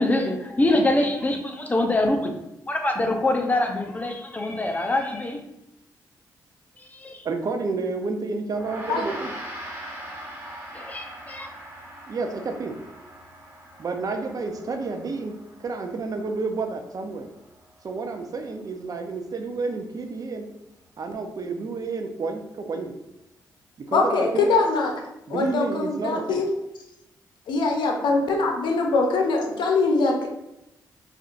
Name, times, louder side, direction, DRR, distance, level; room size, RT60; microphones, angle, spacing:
voice 1, 0.0-2.3 2.7-5.4 6.8-7.2 10.7-11.5, left 2 dB, 20° left, 3 dB, 0.6 m, -24 dB
voice 2, 7.2-9.3 12.1-12.8 13.8-17.3 17.8-20.5 21.0-22.9 23.9-24.5 25.3-26.4, right 3 dB, 50° right, 5 dB, 0.5 m, -30 dB
Gong, 8.5-18.0, equal, 25° right, 1.4 m, -41 dB
voice 3, 23.9-25.0 25.3-26.5 27.5-30.3, left 3 dB, 80° left, 2 dB, 0.6 m, -22 dB
4.4 x 2.5 x 2.5 m, 0.89 s
cardioid pair, 65°, 8 cm